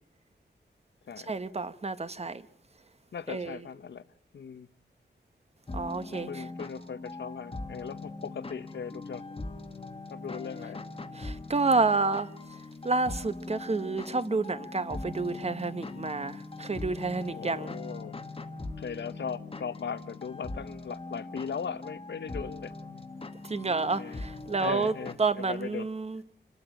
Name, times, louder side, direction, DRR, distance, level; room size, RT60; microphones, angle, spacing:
voice 1, 1.2-2.4 3.3-3.6 5.7-6.5 11.1-17.8 23.4-26.2, right 3 dB, 35° right, 0.9 m, -30 dB
voice 2, 3.1-4.0 4.3-4.7 6.1-9.2 10.1-10.8 17.3-18.2 18.8-22.7 24.0-24.2 24.6-25.9, left 6 dB, 80° left, 0.8 m, -38 dB
sound 1, 5.7-25.1, left 2 dB, 30° left, 1.3 m, -41 dB
27.0 x 13.0 x 9.1 m
wide cardioid pair, 130°, 18 cm